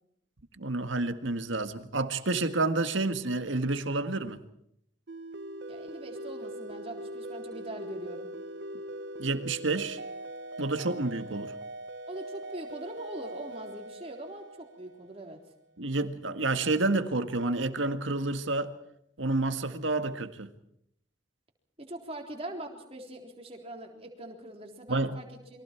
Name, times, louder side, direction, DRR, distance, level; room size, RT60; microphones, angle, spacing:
voice 1, 0.6-4.4 9.2-10.0 10.6-11.5 15.8-18.7 19.2-20.5 24.9-25.1, right 2 dB, 85° right, 1.7 m, -29 dB
sound 1, 5.1-15.4, right 1 dB, 65° right, 1.4 m, -41 dB
voice 2, 5.7-8.3 12.1-15.4 21.8-25.6, right 1 dB, 30° right, 3.8 m, -42 dB
29.0 x 23.5 x 4.6 m
head